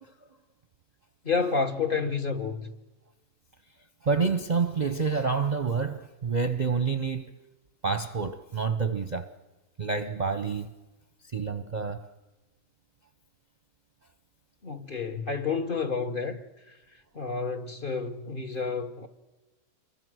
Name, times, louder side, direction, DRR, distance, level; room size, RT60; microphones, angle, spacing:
voice 1, 1.2-2.7 14.6-16.4 17.1-19.1, left 5 dB, 35° left, 1.3 m, -30 dB
voice 2, 4.0-7.3 7.8-9.3 9.8-10.7 11.3-12.1, right 5 dB, 35° right, 0.8 m, -28 dB
27.0 x 22.5 x 6.3 m
omnidirectional pair, 1.6 m